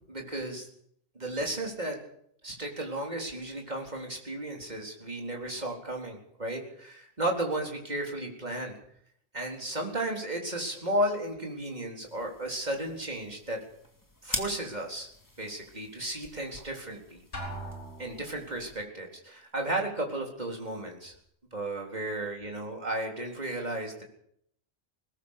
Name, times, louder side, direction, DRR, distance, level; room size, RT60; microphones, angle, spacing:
voice 1, 0.1-0.7 1.2-1.9 2.4-8.7 9.3-13.6 14.2-15.1 15.4-17.2 18.0-21.1 21.5-24.0, right 1 dB, 35° right, 1 dB, 4.2 m, -34 dB
sound 1, 12.0-18.8, left 1 dB, 15° left, 2.7 m, -44 dB
Drum, 17.3-18.5, right 1 dB, 65° left, 5.2 m, -40 dB
20.5 x 19.5 x 6.7 m, 0.69 s
omnidirectional pair, 1.3 m